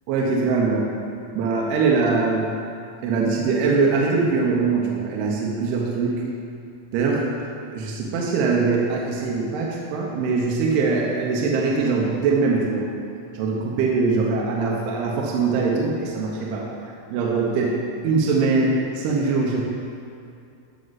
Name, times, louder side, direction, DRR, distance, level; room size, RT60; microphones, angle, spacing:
voice 1, 0.1-0.9 1.3-2.5 3.0-6.2 6.9-7.3 7.7-12.9 13.3-16.7 17.1-17.8 18.0-19.6, right 4 dB, 75° right, -2 dB, 2.7 m, -22 dB
13.0 x 6.0 x 4.0 m, 2.5 s
omnidirectional pair, 5.2 m